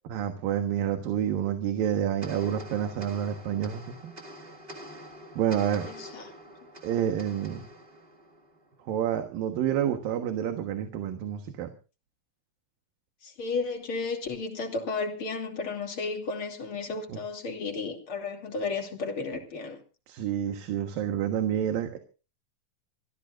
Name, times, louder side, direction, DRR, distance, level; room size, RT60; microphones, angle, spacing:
voice 1, 0.1-4.1 5.4-5.9 6.8-7.7 8.8-11.7 17.1-17.2 20.1-22.0, right 10 dB, 80° right, 5 dB, 3.2 m, -29 dB
sound 1, 2.2-8.9, equal, 20° right, 1.8 m, -46 dB
voice 2, 5.8-6.2 13.2-19.8, left 4 dB, 40° left, 3 dB, 3.4 m, -33 dB
25.5 x 15.5 x 2.6 m, 0.34 s
omnidirectional pair, 4.0 m